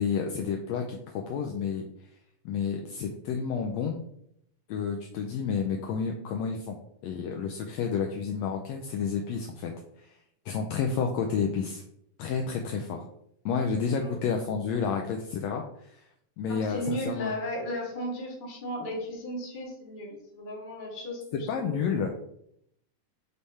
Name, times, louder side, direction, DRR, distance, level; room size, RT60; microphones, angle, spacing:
voice 1, 0.0-1.8 2.4-4.0 4.7-6.8 7.0-9.7 10.0-10.2 10.4-11.8 12.2-13.1 13.4-16.1 16.4-17.3 21.3-22.1, left 6 dB, 85° left, 2 dB, 1.5 m, -30 dB
voice 2, 16.5-22.1, equal, 30° left, -3 dB, 0.9 m, -35 dB
6.5 x 3.5 x 4.1 m, 0.74 s
omnidirectional pair, 3.6 m